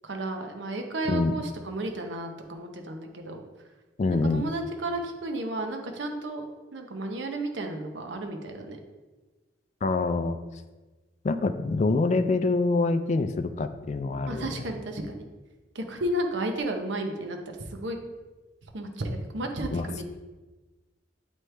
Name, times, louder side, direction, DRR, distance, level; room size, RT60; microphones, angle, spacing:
voice 1, 0.0-3.4 4.1-6.5 6.7-8.8 14.3-15.2 15.7-18.0 18.7-20.0, right 1 dB, 80° right, 4 dB, 0.8 m, -33 dB
voice 2, 4.0-4.4 9.8-10.4 11.2-14.7 19.7-19.9, left 3 dB, 40° left, 10 dB, 0.3 m, -25 dB
9.1 x 3.1 x 3.3 m, 1.2 s
head